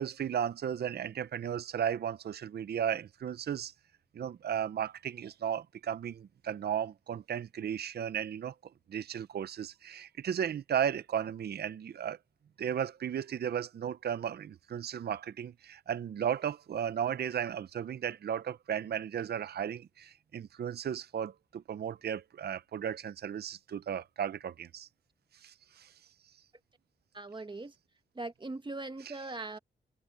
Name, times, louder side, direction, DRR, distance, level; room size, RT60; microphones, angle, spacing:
voice 1, 0.0-3.7 4.1-8.5 8.9-12.2 12.6-24.9 25.3-25.9 29.0-29.2, right 9 dB, 60° right, 0.5 m, -35 dB
voice 2, 27.1-27.7 28.1-29.6, right 2 dB, 25° right, 1.4 m, -40 dB
wide cardioid pair, 140°, 19 cm